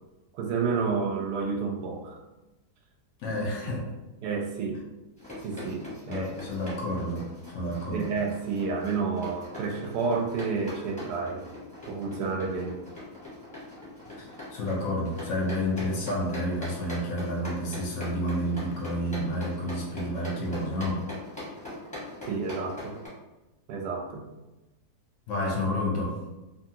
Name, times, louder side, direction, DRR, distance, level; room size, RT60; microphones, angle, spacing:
voice 1, 0.3-2.2 3.3-3.4 3.6-3.7 4.2-4.8 5.4-6.3 7.9-11.5 11.9-12.8 22.2-23.0 23.7-24.2, right 4 dB, 75° right, 2 dB, 1.1 m, -30 dB
voice 2, 3.2-3.9 6.1-7.3 7.5-8.1 14.2-21.0 25.3-26.2, left 1 dB, 60° left, -1 dB, 0.8 m, -30 dB
sound 1, 5.2-23.1, left 1 dB, 5° left, 0.7 m, -42 dB
2.7 x 2.7 x 2.7 m, 1.0 s
omnidirectional pair, 1.8 m